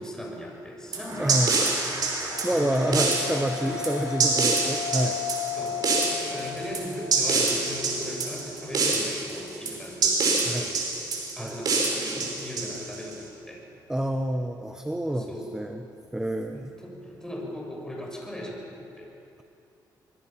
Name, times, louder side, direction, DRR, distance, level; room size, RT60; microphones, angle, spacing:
voice 1, 0.0-1.5 1.9-2.1 2.5-3.3 3.6-3.8 5.6-10.8 11.4-13.6 15.1-15.5 16.5-19.1, equal, 10° left, -1 dB, 6.6 m, -38 dB
Gong, 0.9-10.4, right 2 dB, 40° right, 7.7 m, -43 dB
sound 1, 0.9-13.1, right 4 dB, 55° right, 5.1 m, -26 dB
voice 2, 1.2-1.6 2.4-5.2 10.5-10.7 11.4-11.5 13.9-15.8 16.1-16.7, right 1 dB, 10° right, 6 dB, 1.1 m, -28 dB
sound 2, 1.9-10.5, left 7 dB, 85° left, 6.6 m, -36 dB
24.0 x 24.0 x 5.9 m, 2.6 s
cardioid pair, 105°, 8 cm